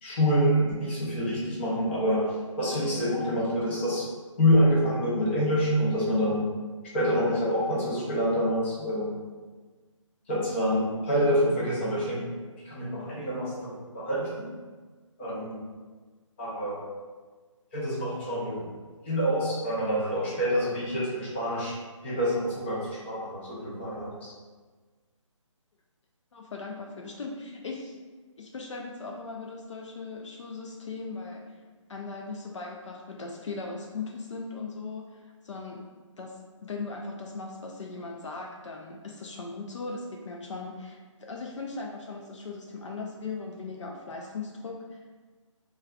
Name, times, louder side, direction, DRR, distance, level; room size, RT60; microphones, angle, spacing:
voice 1, 0.0-4.1 4.4-6.5 6.9-9.2 10.3-12.3 12.6-14.5 15.2-15.6 16.4-16.9 17.7-18.7 19.0-21.8 22.0-24.3, equal, 20° left, -7 dB, 0.7 m, -27 dB
voice 2, 26.3-27.9 28.4-31.6 31.9-35.9 36.2-45.0, left 4 dB, 65° left, 0 dB, 0.4 m, -38 dB
3.3 x 2.3 x 2.4 m, 1.4 s
figure-of-eight pair, 160°, 17 cm